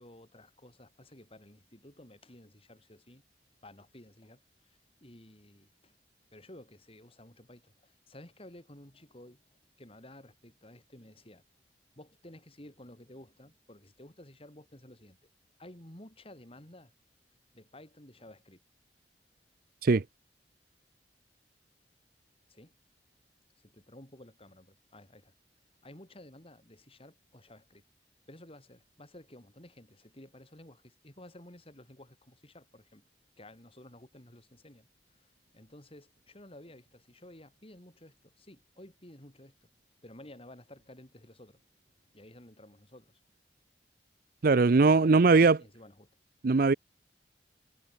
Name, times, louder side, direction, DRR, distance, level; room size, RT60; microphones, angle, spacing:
voice 1, 0.0-3.2 3.6-6.0 6.3-11.4 11.9-15.3 15.6-16.9 17.5-18.6 22.5-22.7 23.6-25.3 25.8-27.8 28.3-33.0 33.4-39.6 40.0-41.6 42.1-43.2 44.6-46.1, left 1 dB, 35° left, 4.7 m, -53 dB
voice 2, 44.4-45.6 46.4-46.7, right 4 dB, 55° right, 0.5 m, -20 dB
head